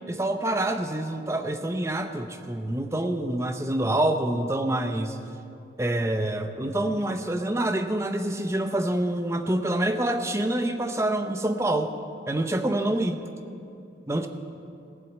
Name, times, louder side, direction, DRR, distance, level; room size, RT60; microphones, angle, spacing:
voice 1, 0.1-5.2 5.8-11.9 12.3-13.2 14.1-14.3, right 1 dB, 15° right, 7 dB, 0.6 m, -26 dB
16.0 x 7.7 x 8.2 m, 2.6 s
head